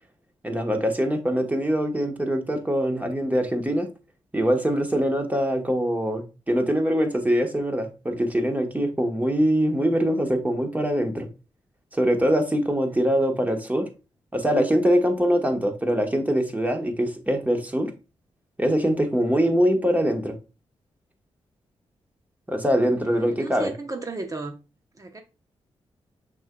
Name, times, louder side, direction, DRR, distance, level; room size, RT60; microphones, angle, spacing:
voice 1, 0.4-3.9 4.3-11.3 11.9-13.9 14.3-17.9 18.6-20.3 22.5-23.7, equal, 15° right, 1.2 m, -23 dB
voice 2, 23.1-24.6 25.0-25.2, right 2 dB, 30° right, 0.8 m, -34 dB
6.2 x 3.8 x 2.2 m
cardioid pair, 60°, 11 cm